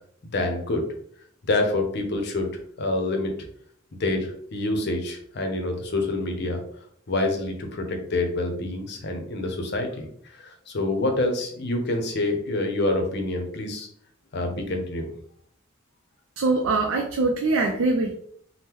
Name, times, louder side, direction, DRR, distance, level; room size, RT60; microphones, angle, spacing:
voice 1, 0.3-0.8 1.5-2.5 2.8-3.3 4.0-6.6 7.1-10.1 10.4-13.9 14.3-15.1, left 2 dB, 55° left, 5 dB, 0.6 m, -26 dB
voice 2, 16.4-18.1, right 3 dB, 90° right, 1 dB, 0.4 m, -23 dB
3.6 x 2.1 x 2.9 m, 0.64 s
head